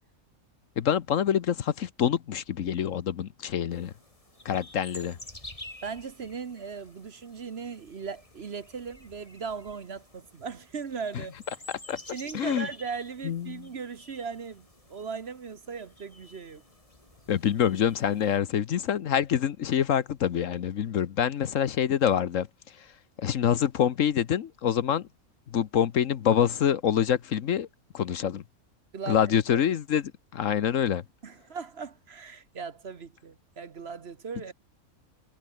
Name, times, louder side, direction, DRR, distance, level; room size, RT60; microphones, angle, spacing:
voice 1, 0.8-3.9 4.4-5.2 11.9-12.0 12.3-12.7 13.2-13.7 17.3-22.5 23.2-25.1 25.5-27.7 27.9-28.4 29.1-31.0, left 9 dB, 65° left, 1.2 m, -26 dB
sound 1, 3.7-18.4, left 1 dB, 25° left, 3.7 m, -50 dB
voice 2, 5.8-11.3 12.1-16.6 28.9-29.2 29.5-29.7 31.2-34.5, right 5 dB, 50° right, 1.3 m, -38 dB
omnidirectional pair, 1.5 m